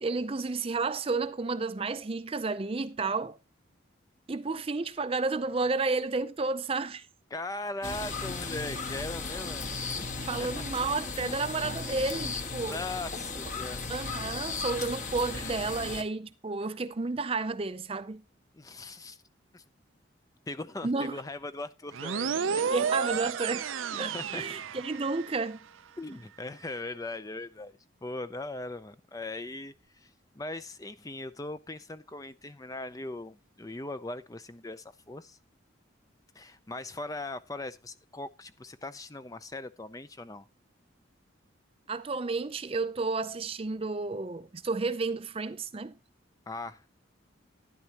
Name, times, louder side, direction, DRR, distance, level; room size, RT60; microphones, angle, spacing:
voice 1, 0.0-3.4 4.3-7.1 10.3-12.8 13.9-18.2 20.8-21.2 22.6-23.7 23.9-25.6 41.9-46.0, right 3 dB, 30° right, 0.5 m, -31 dB
voice 2, 7.3-9.7 10.0-10.6 12.6-13.8 15.3-15.8 18.5-19.2 19.5-19.6 20.5-22.6 24.1-24.4 26.0-35.4 36.3-40.5 46.5-46.9, left 2 dB, 20° left, 0.5 m, -40 dB
sound 1, 7.8-16.0, left 4 dB, 40° left, 1.3 m, -36 dB
sound 2, 21.9-25.4, right 6 dB, 90° right, 0.6 m, -31 dB
12.5 x 11.0 x 2.9 m
head